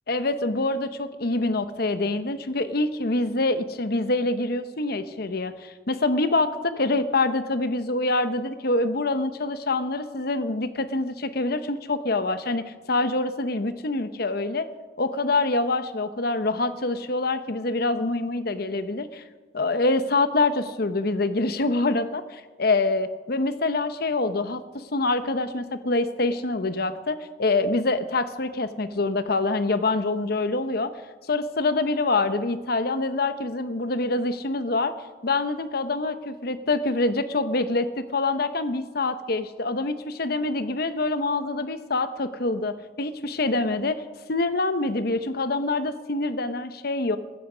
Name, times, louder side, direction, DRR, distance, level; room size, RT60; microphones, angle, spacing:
voice 1, 0.1-14.7 15.0-19.2 19.5-30.9 31.3-34.9 35.2-44.0 44.3-47.2, left 2 dB, 55° left, 11 dB, 1.0 m, -25 dB
15.0 x 14.5 x 5.1 m, 1.2 s
head